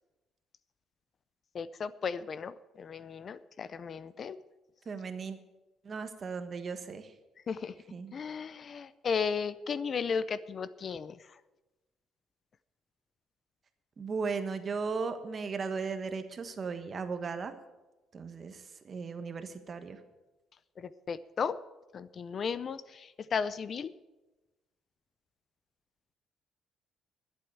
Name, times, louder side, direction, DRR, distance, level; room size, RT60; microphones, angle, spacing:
voice 1, 1.5-4.4 7.5-7.7 8.1-11.1 20.8-21.6 21.9-23.9, left 6 dB, 45° left, 16 dB, 0.5 m, -35 dB
voice 2, 4.8-5.4 5.8-7.1 7.9-8.2 14.0-17.5 18.1-20.0, right 5 dB, 40° right, 9 dB, 1.3 m, -36 dB
12.0 x 8.0 x 9.1 m, 1.1 s
cardioid pair, 105°, 0 cm